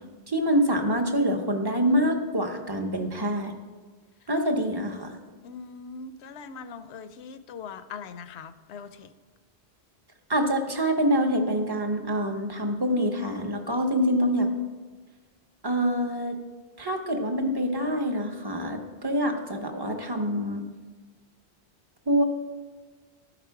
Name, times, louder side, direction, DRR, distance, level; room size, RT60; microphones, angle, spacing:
voice 1, 0.3-3.5 4.3-5.2 10.3-14.5 15.6-16.4 16.8-20.6 22.1-22.2, equal, 25° right, 4 dB, 0.7 m, -25 dB
voice 2, 5.4-9.1, left 5 dB, 80° left, 11 dB, 0.9 m, -41 dB
12.5 x 5.1 x 4.7 m, 1.4 s
omnidirectional pair, 1.1 m